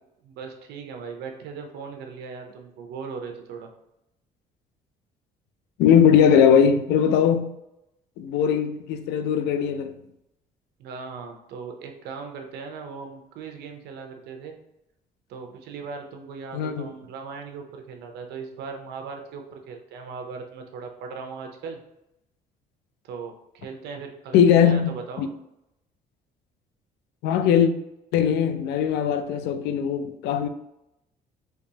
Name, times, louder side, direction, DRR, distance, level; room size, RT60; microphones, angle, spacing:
voice 1, 0.2-3.7 10.8-14.6 15.3-21.8 23.0-25.3, right 5 dB, 75° right, 0.7 m, -38 dB
voice 2, 5.8-7.5 8.2-10.0 16.5-16.9 24.3-24.9 25.2-25.3 27.2-27.7 28.1-30.5, left 8 dB, 85° left, 0.4 m, -20 dB
3.5 x 3.0 x 2.8 m
cardioid pair, 110°, 17 cm